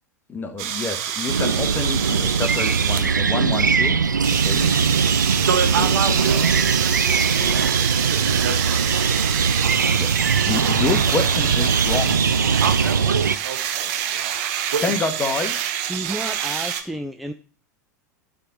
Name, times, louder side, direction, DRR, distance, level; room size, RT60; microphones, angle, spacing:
voice 1, 0.3-4.0 4.4-4.6 5.8-6.2 10.0-10.1 10.5-12.3 14.8-15.5, left 4 dB, 20° left, 6 dB, 1.2 m, -27 dB
sound 1, 0.6-3.2 4.2-16.8, right 10 dB, 50° right, 0.8 m, -26 dB
sound 2, 1.3-13.4, right 5 dB, 85° right, 0.4 m, -21 dB
voice 2, 4.4-4.7 5.4-8.8 12.6-14.2 14.7-14.8, right 6 dB, 70° right, 7 dB, 1.1 m, -28 dB
voice 3, 15.9-17.3, right 1 dB, ahead, 6 dB, 0.4 m, -31 dB
8.9 x 3.8 x 4.1 m, 0.38 s
figure-of-eight pair, 90°, 10 cm